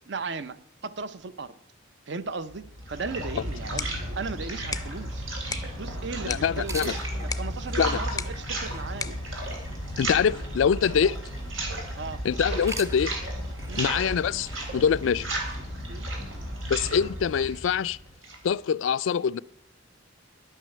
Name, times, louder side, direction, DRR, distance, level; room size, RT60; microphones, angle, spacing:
voice 1, 0.1-1.6 2.1-5.3 5.8-9.2 12.0-12.2 13.7-13.9 15.2-15.3 15.9-16.1, right 4 dB, 60° right, 0.7 m, -36 dB
sound 1, 2.5-18.5, right 1 dB, 90° right, 3.6 m, -34 dB
sound 2, 3.5-10.4, left 5 dB, 20° left, 0.5 m, -40 dB
voice 2, 6.2-6.9 7.8-8.0 10.0-11.2 12.2-13.1 13.8-15.3 16.7-18.0 18.4-19.4, left 7 dB, 75° left, 0.3 m, -24 dB
sound 3, 6.6-11.9 12.4-16.4, right 2 dB, 15° right, 0.9 m, -45 dB
11.0 x 9.1 x 6.6 m
head